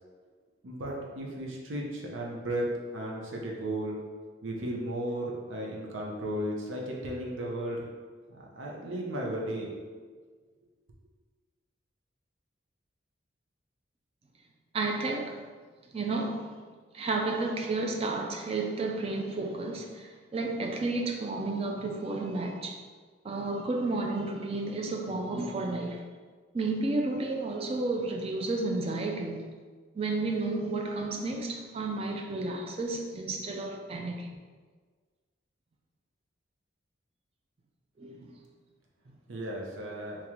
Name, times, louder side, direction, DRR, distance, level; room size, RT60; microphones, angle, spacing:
voice 1, 0.6-4.0 4.4-7.9 8.4-9.7 39.3-40.2, right 1 dB, 85° right, 0.7 m, -35 dB
voice 2, 14.7-15.4 15.9-16.5 16.9-22.8 23.2-26.0 26.5-29.5 29.9-34.4 38.0-38.3 39.1-39.2, right 2 dB, 30° right, 0.3 m, -32 dB
3.6 x 3.0 x 3.0 m
head